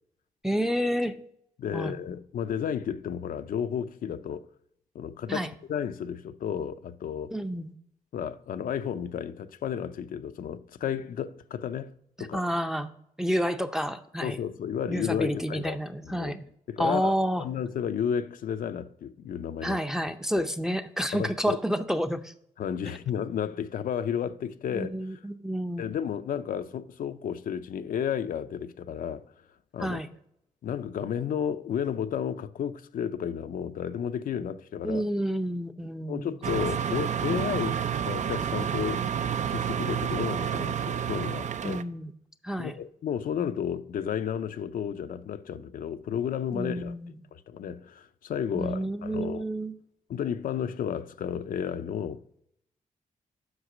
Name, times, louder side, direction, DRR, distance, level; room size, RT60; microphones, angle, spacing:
voice 1, 0.4-1.2 1.7-2.0 5.3-5.5 7.3-7.7 12.2-12.9 13.2-14.4 14.9-16.5 16.8-17.5 19.6-22.3 24.7-25.9 29.8-30.1 34.8-36.6 41.6-42.1 42.4-42.7 46.5-47.1 48.6-49.7, equal, 5° right, 0.5 m, -29 dB
voice 2, 1.6-4.5 4.9-7.3 8.1-11.9 12.2-12.5 14.2-15.8 16.0-16.3 16.7-19.8 20.4-20.5 21.1-21.6 22.6-25.2 25.8-29.2 29.7-30.0 30.6-35.0 36.1-39.0 39.5-41.8 42.6-47.0 47.3-49.4 50.1-52.4, left 8 dB, 75° left, 0.5 m, -32 dB
sound 1, 36.4-41.8, right 8 dB, 55° right, 0.5 m, -29 dB
8.0 x 5.8 x 4.9 m
cardioid pair, 105°, 14 cm